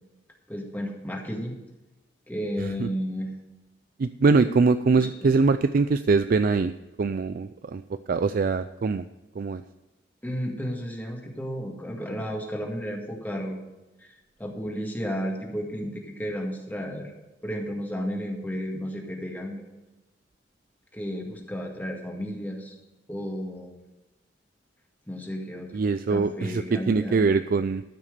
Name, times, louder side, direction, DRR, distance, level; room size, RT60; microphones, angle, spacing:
voice 1, 0.5-1.5 2.3-3.3 5.0-5.3 10.2-13.6 14.4-17.1 17.4-19.6 20.9-22.8 23.1-23.7 25.1-25.8 26.1-27.2, equal, 10° left, 0 dB, 1.9 m, -33 dB
voice 2, 4.0-6.7 7.0-9.0 9.4-9.6 25.7-27.8, right 4 dB, 50° right, 11 dB, 0.4 m, -23 dB
13.0 x 6.1 x 6.8 m, 1.0 s
head